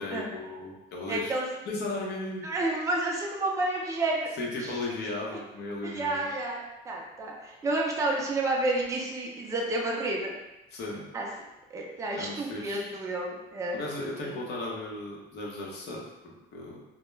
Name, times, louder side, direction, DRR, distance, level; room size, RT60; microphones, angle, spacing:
voice 1, 0.0-1.3 1.7-2.5 4.4-6.3 10.7-11.0 12.2-12.9 13.7-16.8, left 2 dB, 55° left, -2 dB, 0.7 m, -36 dB
voice 2, 1.1-1.4 2.4-4.3 4.6-4.7 5.8-10.3 11.1-11.3 11.7-13.8 14.2-14.4, right 2 dB, 15° right, -2 dB, 0.4 m, -30 dB
2.3 x 2.1 x 3.0 m, 0.98 s
cardioid pair, 135°, 21 cm